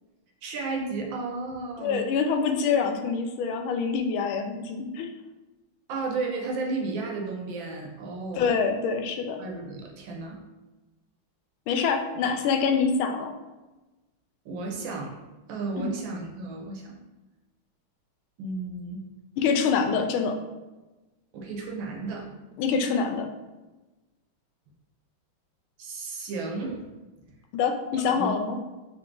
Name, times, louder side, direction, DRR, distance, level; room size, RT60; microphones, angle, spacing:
voice 1, 0.4-2.0 5.9-8.6 9.4-10.4 14.4-15.2 15.5-17.0 18.4-19.1 21.3-22.3 25.8-26.8 27.9-28.3, right 3 dB, 75° right, 0 dB, 1.5 m, -33 dB
voice 2, 1.8-5.1 8.4-9.4 11.7-13.3 15.8-15.9 19.4-20.3 22.6-23.3 27.5-28.6, left 5 dB, 90° left, 5 dB, 1.4 m, -25 dB
3.9 x 3.1 x 3.6 m, 1.1 s
omnidirectional pair, 2.2 m